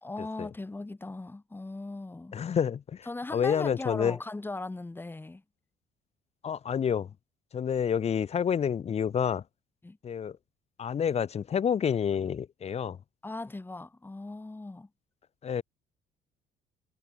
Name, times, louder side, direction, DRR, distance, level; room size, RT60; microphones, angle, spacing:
voice 1, 0.0-2.4 3.1-5.4 9.8-10.0 13.2-14.9, left 2 dB, 10° left, 1.9 m, -38 dB
voice 2, 2.3-3.1 3.3-4.2 6.4-7.1 7.5-9.4 10.0-10.4 10.8-13.0 15.4-15.6, left 8 dB, 40° left, 1.1 m, -28 dB
cardioid pair, 110°, 17 cm